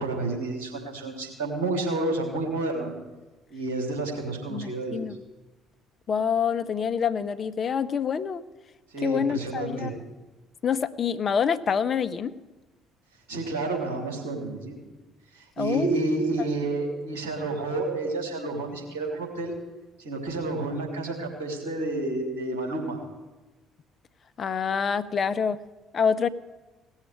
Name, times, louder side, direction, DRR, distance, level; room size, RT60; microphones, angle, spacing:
voice 1, 0.0-2.9 3.5-5.1 8.9-9.9 13.3-14.8 15.3-19.5 20.0-23.0, right 2 dB, 70° right, 0 dB, 3.3 m, -30 dB
voice 2, 4.5-5.2 6.1-8.4 9.0-9.9 10.6-12.3 15.6-16.0 24.4-25.6 25.9-26.3, left 7 dB, 40° left, 11 dB, 0.7 m, -26 dB
17.5 x 7.3 x 9.8 m, 1.1 s
figure-of-eight pair, 50°, 0 cm